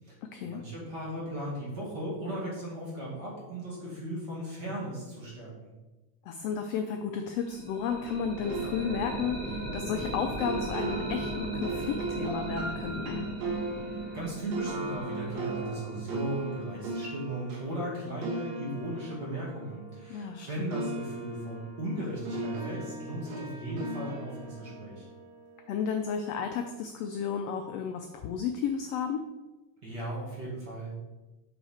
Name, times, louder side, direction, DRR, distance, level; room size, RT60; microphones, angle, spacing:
voice 1, 0.4-5.7 14.1-25.1 29.8-30.9, right 1 dB, 40° right, -5 dB, 2.3 m, -37 dB
voice 2, 6.3-13.3 20.1-20.7 25.7-29.2, left 7 dB, 85° left, 5 dB, 1.4 m, -33 dB
sound 1, 7.4-17.2, right 2 dB, 85° right, 3.6 m, -38 dB
sound 2, 8.4-20.4 20.7-25.9, right 2 dB, 70° right, 2.4 m, -38 dB
7.4 x 5.6 x 4.3 m, 1.1 s
omnidirectional pair, 3.4 m